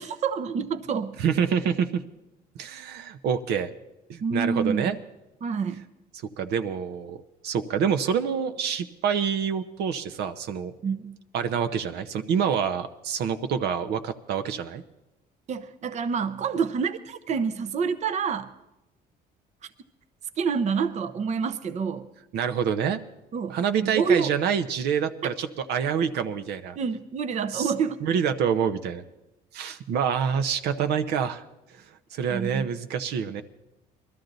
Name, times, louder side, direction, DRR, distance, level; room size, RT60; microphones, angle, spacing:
voice 1, 0.0-1.2 4.2-5.0 5.4-5.8 10.8-11.2 15.5-18.5 20.4-22.1 23.3-24.3 25.2-25.3 26.8-28.0 32.3-32.7, right 6 dB, 45° right, 11 dB, 0.7 m, -28 dB
voice 2, 1.2-2.0 2.6-3.7 4.1-5.0 6.4-7.2 7.4-10.7 11.3-14.8 22.3-23.0 23.5-26.8 27.5-27.7 28.0-29.0 29.5-31.4 32.1-33.4, right 7 dB, 75° right, 9 dB, 0.8 m, -26 dB
20.5 x 13.0 x 4.0 m, 0.95 s
cardioid pair, 110°, 17 cm